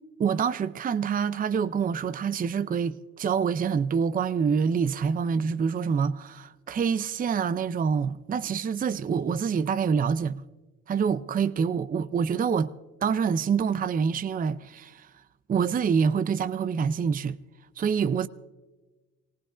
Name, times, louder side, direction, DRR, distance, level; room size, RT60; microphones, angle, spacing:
voice 1, 0.2-10.4 10.9-12.7 13.0-15.1 15.5-17.4 17.8-18.3, right 6 dB, 30° right, 0.5 m, -26 dB
24.5 x 18.5 x 2.5 m
cardioid pair, 90°, 30 cm